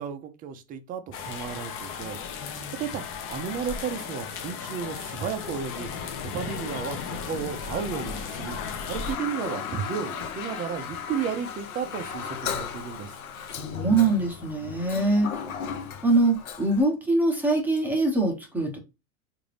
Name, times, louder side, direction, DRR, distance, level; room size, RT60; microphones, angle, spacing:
voice 1, 0.0-8.6 8.9-13.1, right 7 dB, 20° right, 0.4 m, -33 dB
sound 1, 1.1-9.2, left 6 dB, 30° left, 0.5 m, -35 dB
voice 2, 2.4-2.8 13.6-15.3 16.0-18.8, right 2 dB, 5° right, 0.8 m, -23 dB
Toilet flush, 7.7-16.8, left 7 dB, 90° left, 0.7 m, -36 dB
3.6 x 2.6 x 3.3 m
hypercardioid pair, 110°, 42 cm